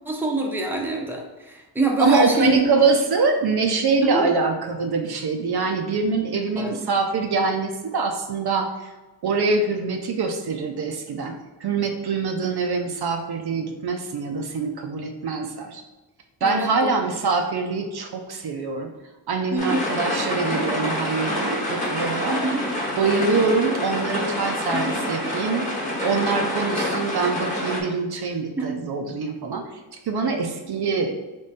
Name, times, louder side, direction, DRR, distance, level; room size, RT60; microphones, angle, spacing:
voice 1, 0.1-2.6 4.0-4.3 6.6-6.8 16.4-16.9 19.5-19.8 22.3-22.6 24.7-25.3 28.6-28.7, right 2 dB, 5° right, -1 dB, 0.7 m, -25 dB
voice 2, 2.0-8.9 9.2-15.8 16.4-18.9 19.3-22.4 23.0-25.6 26.0-29.6 30.0-31.2, right 4 dB, 55° right, 4 dB, 0.6 m, -24 dB
sound 1, 19.6-27.8, left 1 dB, 15° left, 1.1 m, -27 dB
3.6 x 3.1 x 4.1 m, 1.1 s
cardioid pair, 90°, 45 cm